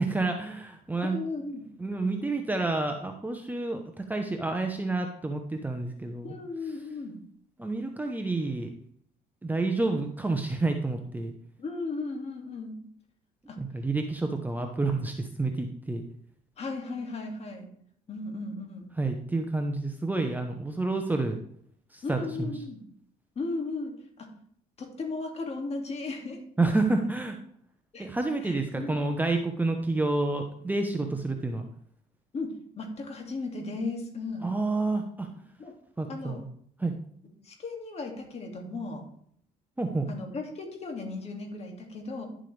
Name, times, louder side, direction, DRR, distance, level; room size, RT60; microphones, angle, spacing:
voice 1, 0.0-1.2 1.8-6.3 7.6-8.7 9.4-11.3 13.6-16.0 19.0-21.4 21.9-22.5 26.6-27.4 28.0-31.7 34.4-35.3 36.0-36.5 36.8-36.9 39.8-40.1, right 2 dB, 10° right, 4 dB, 0.9 m, -29 dB
voice 2, 1.0-1.6 6.2-7.2 11.6-12.8 13.5-13.6 16.6-17.7 18.1-18.9 22.0-22.8 23.4-24.3 24.8-26.4 27.9-28.1 28.4-28.9 32.3-34.5 35.6-35.7 36.1-36.4 37.4-39.0 40.1-42.3, left 3 dB, 40° left, 2 dB, 2.5 m, -36 dB
11.0 x 7.5 x 3.4 m, 0.63 s
cardioid pair, 110°, 17 cm